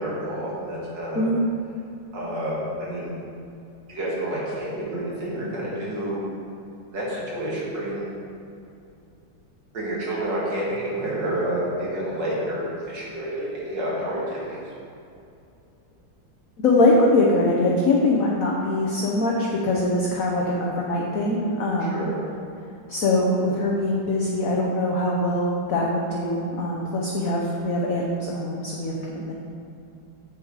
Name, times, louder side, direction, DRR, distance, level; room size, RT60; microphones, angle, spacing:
voice 1, 0.0-1.3 2.1-2.5 2.8-3.1 3.9-6.2 6.9-8.1 9.7-14.6 21.8-22.2, right 1 dB, 70° right, -6 dB, 2.7 m, -29 dB
voice 2, 16.6-22.1 22.9-29.3, left 2 dB, 55° left, -2 dB, 1.1 m, -22 dB
7.9 x 7.0 x 4.8 m, 2.6 s
omnidirectional pair, 2.1 m